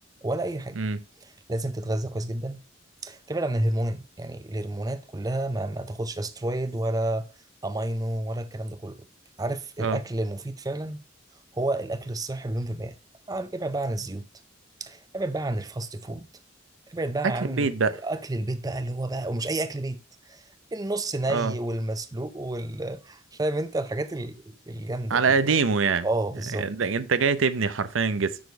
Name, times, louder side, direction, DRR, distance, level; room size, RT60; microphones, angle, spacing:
voice 1, 0.2-0.8 1.5-2.6 3.0-7.3 7.6-9.0 9.4-11.0 11.5-12.9 13.3-14.3 14.8-16.3 16.9-17.7 18.0-20.4 20.7-25.5 26.0-26.7, right 1 dB, 20° right, 0.5 m, -30 dB
voice 2, 17.2-18.0 21.3-21.5 25.1-26.1 26.6-28.4, right 5 dB, 85° right, 0.7 m, -24 dB
6.2 x 5.0 x 4.7 m
head